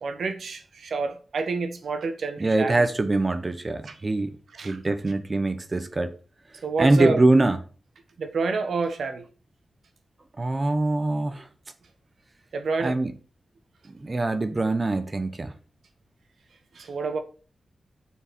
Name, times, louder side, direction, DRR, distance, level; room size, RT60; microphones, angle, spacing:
voice 1, 0.0-2.8 4.6-4.8 6.6-7.2 8.2-9.2 12.5-13.0 16.8-17.2, right 4 dB, 75° right, 1.2 m, -28 dB
voice 2, 2.4-4.4 4.6-6.1 6.8-7.6 10.4-11.5 12.8-13.1 13.9-15.5, right 2 dB, 25° right, 0.8 m, -23 dB
7.0 x 4.7 x 5.8 m
wide cardioid pair, 175°, 0 cm